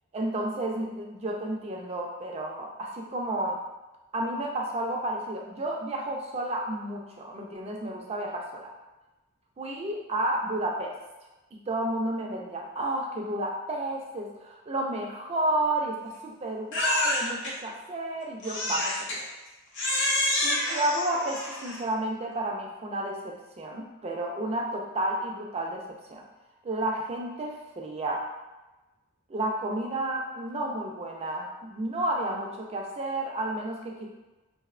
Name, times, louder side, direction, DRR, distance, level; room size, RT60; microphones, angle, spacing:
voice 1, 0.1-3.6 4.1-8.6 9.6-11.0 11.5-19.3 20.4-26.2 26.6-28.3 29.3-34.1, right 1 dB, 30° right, 0 dB, 0.3 m, -31 dB
Crying sobbing, 16.7-17.5 18.4-19.2 19.7-21.9, left 1 dB, 55° left, 0.5 m, -28 dB
2.7 x 2.0 x 2.4 m, 1.1 s
head